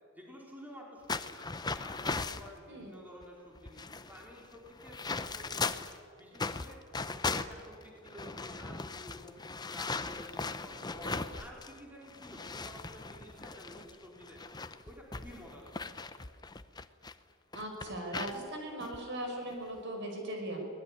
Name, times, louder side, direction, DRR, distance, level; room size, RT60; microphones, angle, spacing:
voice 1, 0.1-1.4 1.8-5.8 6.1-6.8 7.1-9.4 9.7-14.4 14.8-15.9, equal, 10° right, -2 dB, 4.5 m, -51 dB
sound 1, 1.1-2.5 3.2-3.3 3.6-6.0 6.3-11.8 12.1-17.1 17.5-18.4 18.8-19.0 19.5-19.8, left 4 dB, 20° left, 0.8 m, -38 dB
voice 2, 17.5-20.7, right 1 dB, 55° right, 3 dB, 5.6 m, -39 dB
23.0 x 19.5 x 10.0 m, 2.2 s
head